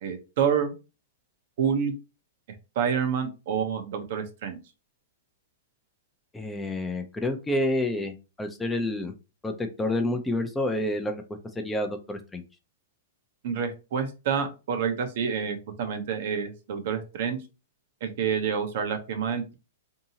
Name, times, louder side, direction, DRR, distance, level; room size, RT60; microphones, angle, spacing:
voice 1, 0.0-0.7 1.6-1.9 2.8-4.6 13.4-17.4 18.0-19.5, right 7 dB, 60° right, 6 dB, 0.7 m, -28 dB
voice 2, 6.3-9.1 9.4-11.2 11.6-12.4, left 1 dB, 10° left, 6 dB, 0.4 m, -29 dB
2.7 x 2.6 x 2.7 m, 0.30 s
hypercardioid pair, 120°, 0 cm